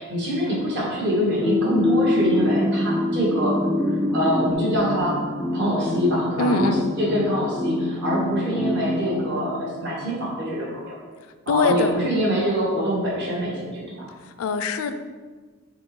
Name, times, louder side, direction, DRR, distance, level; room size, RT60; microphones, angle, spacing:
voice 1, 0.0-3.5 4.1-5.2 5.5-6.7 7.0-10.9 11.5-14.1, equal, 55° right, -5 dB, 1.4 m, -25 dB
sound 1, 1.4-10.2, left 1 dB, ahead, 0.4 m, -25 dB
voice 2, 6.4-6.9 11.5-12.0 14.2-14.9, left 4 dB, 75° left, 9 dB, 0.4 m, -23 dB
4.3 x 3.8 x 3.2 m, 1.4 s
head